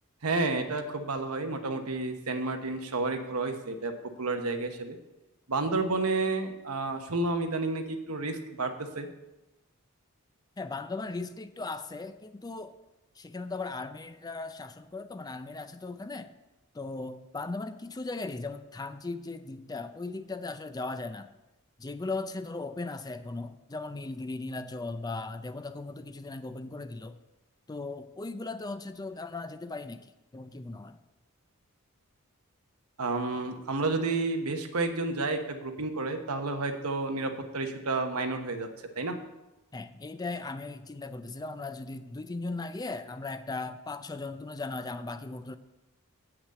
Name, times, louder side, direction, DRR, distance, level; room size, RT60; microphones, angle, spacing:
voice 1, 0.2-3.9 4.2-5.0 5.5-9.1 33.0-38.7 39.0-39.2, right 3 dB, 90° right, 6 dB, 1.1 m, -30 dB
voice 2, 10.6-12.7 13.2-16.3 16.7-21.3 21.8-27.2 27.7-31.0 39.7-45.6, left 3 dB, 20° left, 11 dB, 0.4 m, -38 dB
8.1 x 5.9 x 7.7 m, 1.0 s
head